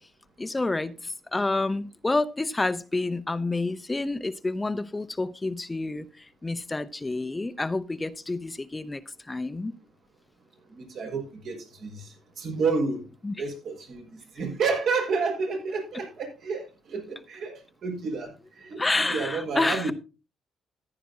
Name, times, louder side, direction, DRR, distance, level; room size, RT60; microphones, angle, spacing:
voice 1, 0.4-9.0 9.3-9.7 13.2-13.3 18.8-19.9, left 2 dB, 20° left, 0.6 m, -29 dB
voice 2, 10.7-13.0 13.4-18.8 19.1-19.9, right 4 dB, 70° right, 5.8 m, -30 dB
14.5 x 11.0 x 2.8 m
cardioid pair, 90°, 0 cm